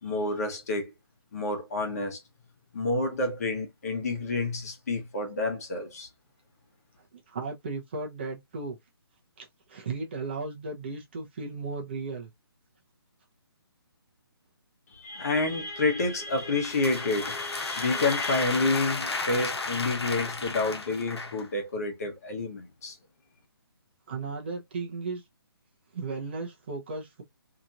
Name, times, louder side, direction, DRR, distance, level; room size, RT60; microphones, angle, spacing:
voice 1, 0.0-0.9 1.3-2.2 2.7-6.1 14.9-23.0, left 2 dB, 40° left, 1.2 m, -29 dB
voice 2, 7.3-8.8 9.4-12.3 24.1-25.2 25.9-27.2, right 3 dB, 25° right, 0.8 m, -35 dB
sound 1, 16.4-21.5, left 3 dB, 85° left, 1.1 m, -33 dB
4.2 x 2.9 x 2.5 m
hypercardioid pair, 175°, 13 cm